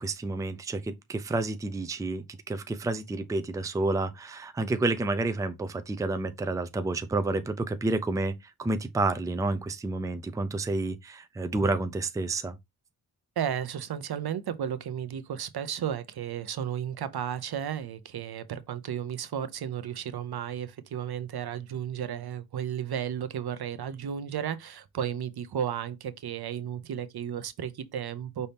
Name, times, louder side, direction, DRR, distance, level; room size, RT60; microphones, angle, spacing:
voice 1, 0.0-12.6, right 2 dB, 10° right, 0.4 m, -30 dB
voice 2, 13.4-28.5, right 9 dB, 80° right, 0.6 m, -33 dB
5.4 x 2.7 x 3.4 m
wide cardioid pair, 140°, 38 cm